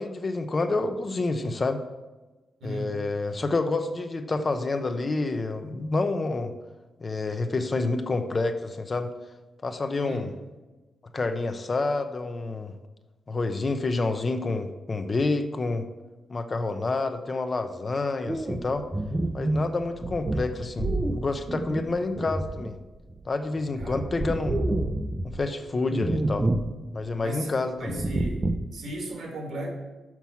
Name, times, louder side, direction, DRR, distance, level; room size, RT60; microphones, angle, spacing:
voice 1, 0.0-1.8 2.6-6.5 7.0-9.1 9.6-10.3 11.1-12.7 13.3-15.9 16.3-18.9 19.3-22.8 23.3-24.6 25.2-26.5 26.9-28.0, left 3 dB, 30° left, 8 dB, 0.6 m, -28 dB
voice 2, 2.6-2.9 10.0-10.3 23.8-24.0 27.2-29.7, right 1 dB, 65° right, 2 dB, 2.2 m, -36 dB
sound 1, 18.3-23.3 23.6-25.4 25.9-26.8 27.0-27.1 27.9-28.8, right 2 dB, 20° right, 0.5 m, -28 dB
6.0 x 5.9 x 7.0 m, 1.1 s
cardioid pair, 120°, 0 cm